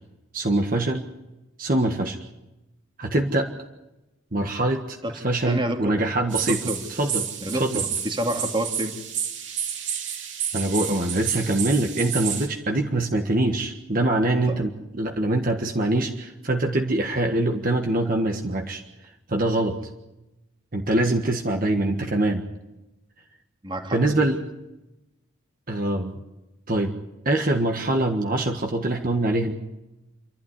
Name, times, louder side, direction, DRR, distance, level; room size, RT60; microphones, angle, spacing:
voice 1, 0.3-1.1 1.6-2.2 3.0-3.5 4.3-6.6 6.9-7.8 10.5-18.8 19.3-19.8 20.7-22.4 23.9-24.4 25.7-26.2 26.7-26.9 27.2-29.5, right 2 dB, 45° right, 3 dB, 1.6 m, -24 dB
voice 2, 5.5-6.0 6.4-6.8 7.4-8.9 14.4-14.6 23.6-24.2, right 1 dB, 25° right, 5 dB, 2.3 m, -28 dB
sound 1, 6.3-12.5, right 8 dB, 65° right, 3.7 m, -30 dB
28.5 x 12.0 x 9.9 m, 0.99 s
head